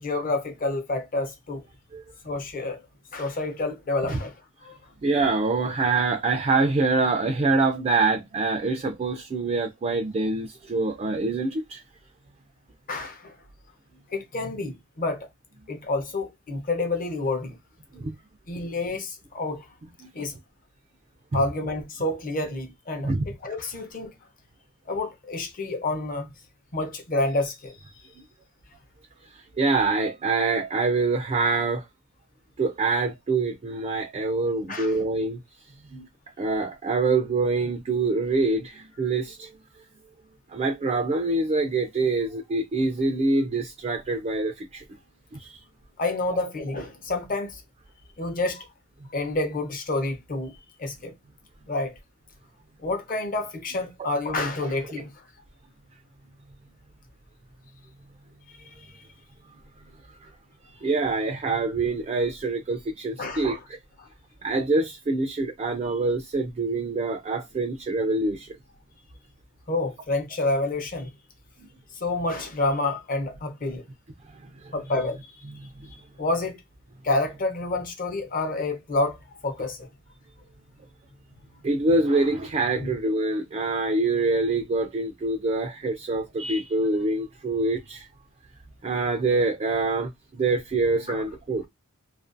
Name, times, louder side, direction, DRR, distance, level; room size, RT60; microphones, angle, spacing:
voice 1, 0.0-1.6 2.2-2.8 3.1-4.3 4.6-4.8 12.9-13.4 14.1-15.3 15.7-17.6 18.5-19.7 20.1-20.3 21.3-23.1 23.4-24.1 24.9-26.3 26.7-27.8 34.7-34.9 46.0-47.6 48.2-48.7 49.1-51.1 51.7-51.9 52.8-55.1 58.6-58.9 63.2-63.5 64.0-64.1 69.7-71.1 71.9-73.8 74.7-75.2 76.2-76.6 77.0-79.9 82.8-83.0 91.1-91.2, left 2 dB, 40° left, 0.7 m, -28 dB
voice 2, 5.0-11.8 17.9-18.1 20.0-20.3 21.3-21.4 23.0-23.3 28.2-28.3 29.3-31.9 32.6-35.4 35.9-36.1 36.4-39.5 40.5-44.8 45.3-45.6 54.0-54.1 54.4-54.5 60.2-60.3 60.8-63.8 64.4-68.6 71.6-71.7 74.4-74.7 75.6-75.7 81.6-88.1 88.8-91.7, right 3 dB, 30° right, 0.3 m, -25 dB
2.5 x 2.1 x 2.5 m
head